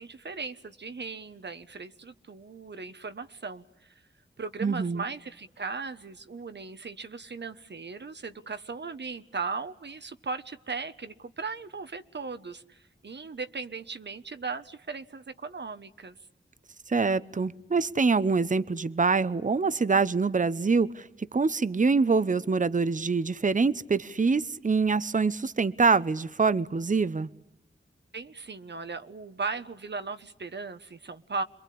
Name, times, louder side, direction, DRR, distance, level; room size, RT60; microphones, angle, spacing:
voice 1, 0.0-3.6 4.4-16.2 28.1-31.4, right 4 dB, 60° right, 10 dB, 1.2 m, -37 dB
voice 2, 4.6-5.0 16.9-27.3, right 4 dB, 40° right, 16 dB, 0.9 m, -25 dB
27.5 x 22.0 x 8.6 m, 0.93 s
cardioid pair, 45°, 20 cm